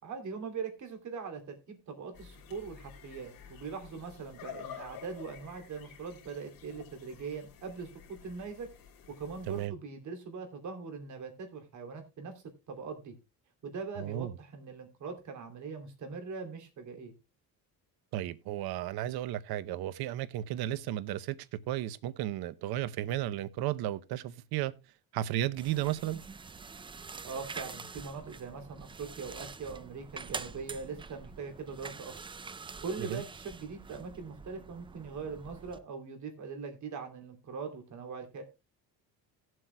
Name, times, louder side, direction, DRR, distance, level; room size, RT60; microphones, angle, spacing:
voice 1, 0.0-8.7 9.1-12.3 12.7-13.1 13.6-17.1 27.2-32.1 32.8-38.4, right 5 dB, 45° right, 3.1 m, -41 dB
sound 1, 2.1-9.7, left 9 dB, 60° left, 3.0 m, -50 dB
voice 2, 14.0-14.3 18.1-21.4 21.7-24.7 25.1-26.2 33.0-33.2, right 13 dB, 65° right, 0.9 m, -34 dB
sound 2, 25.6-35.8, right 4 dB, 15° right, 0.4 m, -46 dB
18.5 x 7.8 x 2.2 m
cardioid pair, 145°, 39 cm